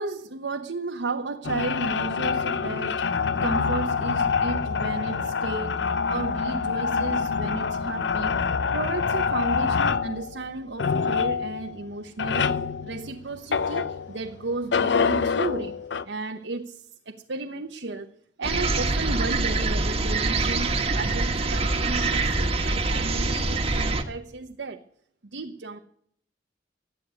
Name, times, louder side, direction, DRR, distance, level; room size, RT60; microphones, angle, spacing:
voice 1, 0.0-8.4 8.7-12.5 12.8-15.8 16.0-18.1 18.4-24.8 25.3-25.8, right 3 dB, 90° right, 1.0 m, -33 dB
sound 1, 1.4-14.3 14.7-16.0, left 5 dB, 80° left, 0.6 m, -26 dB
sound 2, 18.4-24.0, right 3 dB, 35° right, 1.5 m, -25 dB
13.0 x 9.8 x 9.5 m
head